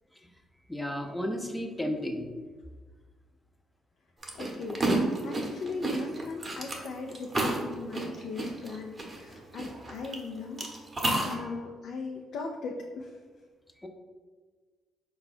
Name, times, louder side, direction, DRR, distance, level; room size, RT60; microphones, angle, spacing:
voice 1, 0.7-2.3 13.8-13.9, equal, 10° left, 4 dB, 0.5 m, -33 dB
sound 1, 4.2-10.2 10.6-11.3, right 2 dB, 30° right, 0.8 m, -30 dB
voice 2, 4.3-10.7 11.2-13.2, left 4 dB, 70° left, 0 dB, 0.4 m, -39 dB
4.4 x 2.3 x 4.1 m, 1.4 s
cardioid pair, 90°, 0 cm